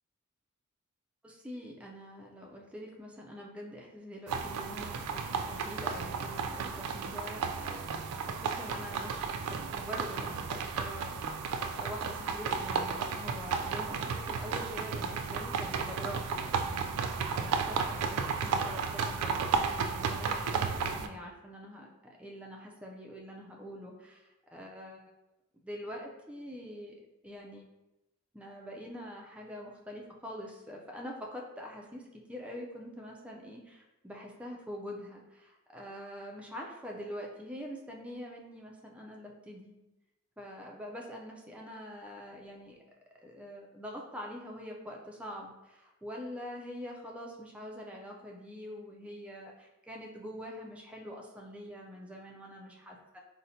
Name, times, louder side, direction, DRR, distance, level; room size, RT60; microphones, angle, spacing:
voice 1, 1.2-7.9 8.2-25.0 25.6-27.6 28.3-39.8 40.4-42.8 43.2-53.2, equal, 5° right, -1 dB, 0.4 m, -45 dB
sound 1, 4.3-21.1, right 5 dB, 80° right, 0.3 m, -33 dB
4.0 x 2.1 x 2.6 m, 0.96 s
head